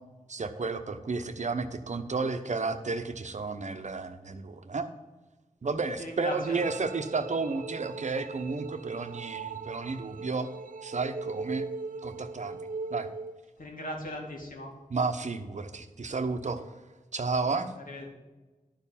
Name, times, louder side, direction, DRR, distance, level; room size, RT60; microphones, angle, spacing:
voice 1, 0.3-4.9 5.6-10.5 10.8-11.7 12.0-12.6 12.9-13.1 14.9-16.6 17.1-17.7, right 4 dB, 55° right, 9 dB, 0.8 m, -32 dB
voice 2, 6.0-6.6 13.6-14.7 17.9-18.1, left 1 dB, 75° left, 0 dB, 2.1 m, -38 dB
sound 1, 6.4-13.4, right 4 dB, 70° right, 0.5 m, -40 dB
11.0 x 4.6 x 7.2 m, 1.2 s
wide cardioid pair, 65°, 14 cm